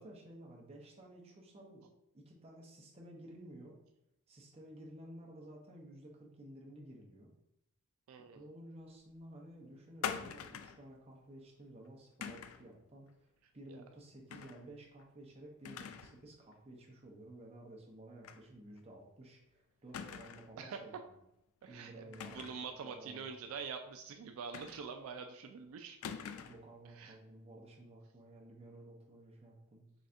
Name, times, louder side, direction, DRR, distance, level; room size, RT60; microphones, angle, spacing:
voice 1, 0.0-1.8 2.1-3.8 4.3-7.3 8.3-13.3 13.5-21.1 21.7-23.5 26.4-29.9, right 1 dB, 30° right, -1 dB, 0.7 m, -54 dB
voice 2, 8.1-8.4 13.7-13.8 20.6-21.0 21.6-26.0 26.9-27.2, right 6 dB, 75° right, 5 dB, 0.3 m, -45 dB
sound 1, 10.0-10.8 12.2-12.7 14.3-14.6 15.0-15.1 15.6-16.2 16.5-16.6 18.2-18.4 18.8-18.9 19.9-20.6 22.1-22.7 24.5-25.1 26.0-26.7, left 7 dB, 80° left, 0.3 m, -44 dB
4.0 x 3.3 x 2.5 m, 0.82 s
head